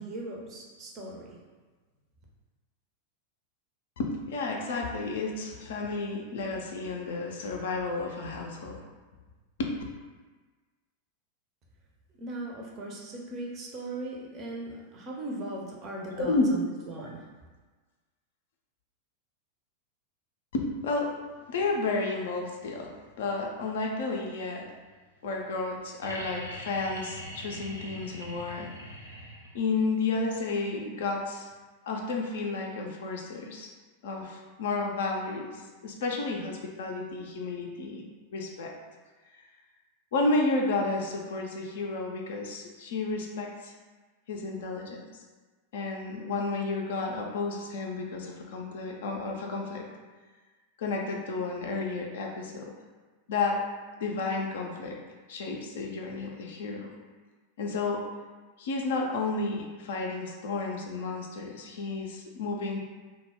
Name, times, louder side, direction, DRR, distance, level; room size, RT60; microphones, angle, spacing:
voice 1, 0.0-1.4 12.2-17.3, right 2 dB, 35° right, -2 dB, 0.5 m, -38 dB
voice 2, 4.0-8.8 9.6-9.7 16.2-16.5 20.5-21.1 21.5-24.7 25.2-28.7 29.5-31.5 31.9-33.7 34.0-38.0 38.3-38.7 40.1-43.7 44.3-45.0 45.7-49.9 50.8-52.7 53.3-53.6 54.0-55.0 55.3-56.9 57.6-58.0 58.6-62.8, left 3 dB, 60° left, 0 dB, 0.3 m, -32 dB
sound 1, 26.0-29.8 31.5-31.6, equal, 90° right, 0.4 m, -42 dB
2.1 x 2.0 x 3.4 m, 1.3 s
figure-of-eight pair, 90°, 0 cm